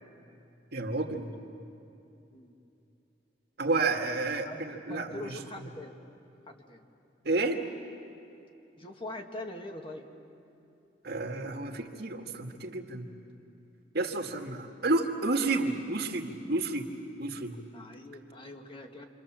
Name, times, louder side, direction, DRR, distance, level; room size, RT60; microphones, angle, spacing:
voice 1, 0.7-1.3 3.6-5.3 7.3-7.6 11.0-13.1 13.9-16.9 17.2-17.6, right 3 dB, 60° right, 3 dB, 2.0 m, -30 dB
voice 2, 4.4-5.9 6.5-6.9 8.8-10.0 17.7-19.0, left 1 dB, 30° left, 3 dB, 1.9 m, -43 dB
28.0 x 26.0 x 7.5 m, 2.8 s
head